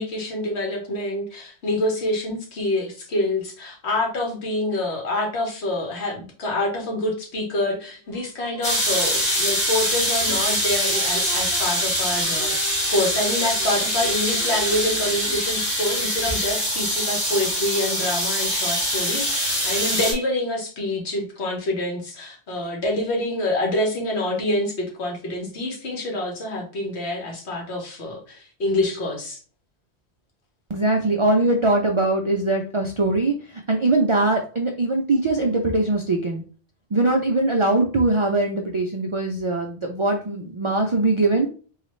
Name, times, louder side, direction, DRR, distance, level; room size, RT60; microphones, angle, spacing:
voice 1, 0.0-29.4, left 1 dB, 75° left, 0 dB, 1.4 m, -26 dB
sound 1, 8.0-9.4 10.3-15.7, right 1 dB, 20° left, 0.7 m, -42 dB
sound 2, 8.6-20.1, equal, 45° left, 1.7 m, -24 dB
voice 2, 30.7-33.3 33.7-36.4 36.9-41.5, right 2 dB, 55° right, 2 dB, 0.3 m, -21 dB
3.9 x 2.4 x 3.1 m, 0.40 s
omnidirectional pair, 1.1 m